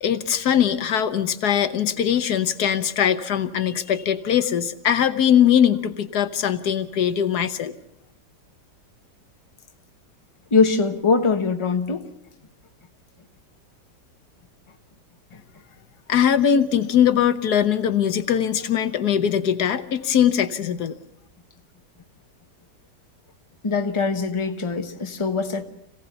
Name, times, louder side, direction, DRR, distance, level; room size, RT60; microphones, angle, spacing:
voice 1, 0.0-7.7 16.1-20.9, left 9 dB, 65° left, 1.5 m, -21 dB
voice 2, 10.5-12.1 15.3-15.4 23.6-25.6, left 4 dB, 20° left, 1.1 m, -22 dB
26.5 x 17.0 x 6.8 m
omnidirectional pair, 1.8 m